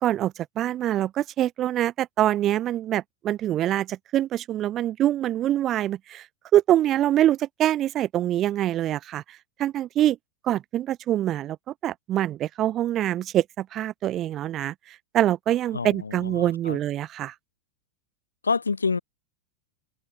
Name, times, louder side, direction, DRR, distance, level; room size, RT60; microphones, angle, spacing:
voice 1, 0.0-6.3 6.5-10.2 10.4-17.3, right 12 dB, 30° right, 0.5 m, -25 dB
voice 2, 15.7-16.8 18.4-19.0, left 4 dB, 75° left, 0.8 m, -27 dB
open air
figure-of-eight pair, 90°, 0 cm